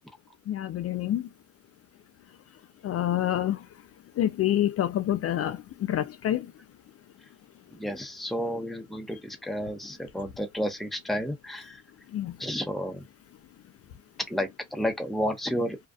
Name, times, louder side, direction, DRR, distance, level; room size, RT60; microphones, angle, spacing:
voice 1, 0.5-1.3 2.8-3.7 4.2-6.5 12.1-12.4, left 12 dB, 50° left, 0.4 m, -27 dB
voice 2, 7.7-11.8 12.4-13.0 14.3-15.8, equal, ahead, 0.7 m, -31 dB
2.5 x 2.3 x 2.3 m
cardioid pair, 90°, 30 cm